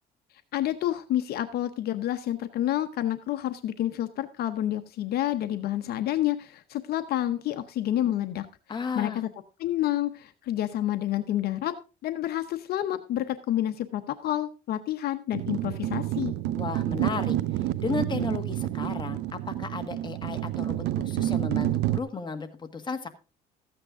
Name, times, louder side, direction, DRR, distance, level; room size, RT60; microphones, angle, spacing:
voice 1, 0.5-8.5 8.9-9.3 9.6-11.7 12.0-16.3, left 12 dB, 70° left, 10 dB, 0.9 m, -29 dB
voice 2, 8.7-9.2 16.5-23.1, left 4 dB, 25° left, 7 dB, 1.6 m, -34 dB
sound 1, 15.3-22.0, right 13 dB, 90° right, 0.6 m, -29 dB
14.0 x 8.9 x 3.6 m, 0.31 s
cardioid pair, 110°, 17 cm